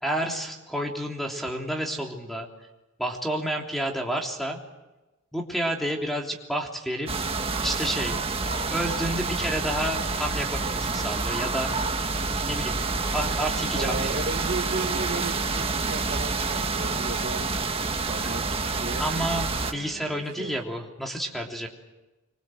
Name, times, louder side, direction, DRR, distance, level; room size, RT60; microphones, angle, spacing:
voice 1, 0.0-2.5 3.0-4.6 5.3-7.1 7.6-8.2 8.7-11.7 12.5-12.8 13.1-14.2 18.2-18.3 19.0-21.7, right 1 dB, ahead, 1 dB, 3.3 m, -30 dB
sound 1, 7.1-19.7, right 3 dB, 25° right, 1.6 m, -28 dB
voice 2, 13.8-17.5 18.0-19.0 19.7-20.6, right 3 dB, 45° right, 5 dB, 1.3 m, -35 dB
26.0 x 24.5 x 7.8 m, 1.0 s
head